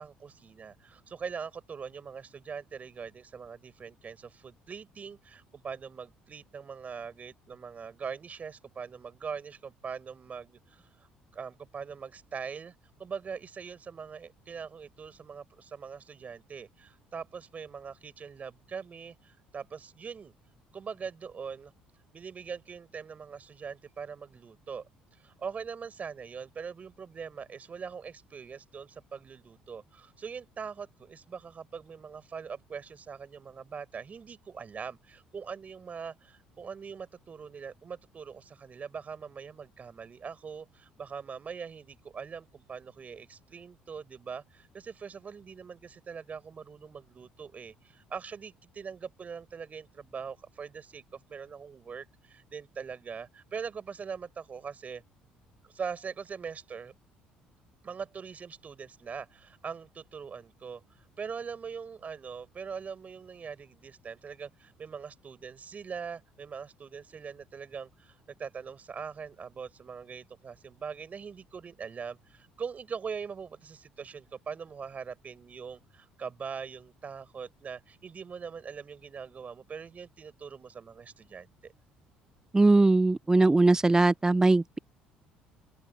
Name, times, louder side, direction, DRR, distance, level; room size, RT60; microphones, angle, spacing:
voice 1, 0.0-12.7 13.0-20.3 20.7-21.7 22.1-24.9 25.2-55.0 55.7-56.9 57.8-81.7, right 6 dB, 35° right, 6.2 m, -42 dB
voice 2, 82.5-84.8, right 2 dB, 15° right, 0.5 m, -21 dB
open air
hypercardioid pair, 55°, 4 cm